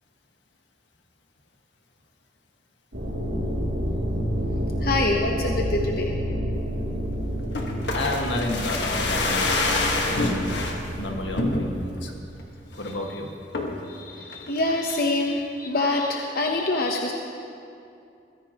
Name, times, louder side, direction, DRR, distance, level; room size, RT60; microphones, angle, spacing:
sound 1, 2.9-11.6, equal, 75° right, 2.7 m, -29 dB
voice 1, 4.8-6.1 13.8-17.1, left 2 dB, 55° left, 1 dB, 0.9 m, -25 dB
sound 2, 7.5-10.8 11.4-12.0 12.4-12.5 12.7-13.1 13.5-13.9 14.3-15.0 15.3-15.4, left 2 dB, 70° left, 1.5 m, -26 dB
voice 2, 7.9-9.7 10.0-10.5 11.0-12.1 12.8-13.3, left 2 dB, 85° left, 1 dB, 1.7 m, -31 dB
22.0 x 15.5 x 3.0 m, 2.5 s
head